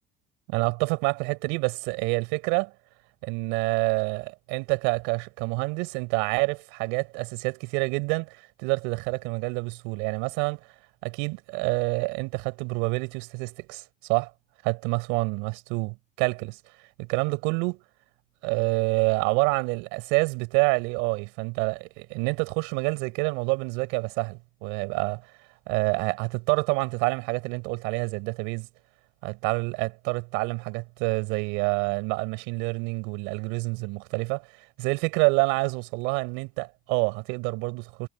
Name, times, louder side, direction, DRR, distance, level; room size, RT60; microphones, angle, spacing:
voice 1, 0.5-2.7 3.2-10.6 11.0-13.8 14.1-14.3 14.6-16.6 17.0-17.8 18.4-25.2 25.7-28.7 29.2-34.4 34.8-38.1, right 30 dB, 75° right, 5.9 m, -27 dB
supercardioid pair, 80°, 20 cm